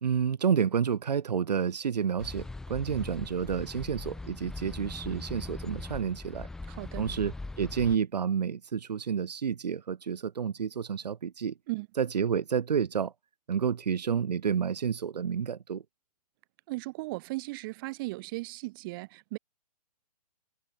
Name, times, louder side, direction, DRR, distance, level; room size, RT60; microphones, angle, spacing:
voice 1, 0.0-6.5 7.0-11.5 12.0-13.1 13.5-15.8, right 7 dB, 80° right, 1.3 m, -30 dB
sound 1, 2.2-8.0, left 2 dB, 5° left, 0.6 m, -40 dB
voice 2, 6.7-7.1 11.7-11.9 16.7-19.4, right 22 dB, 35° right, 3.3 m, -36 dB
hypercardioid pair, 150°, 21 cm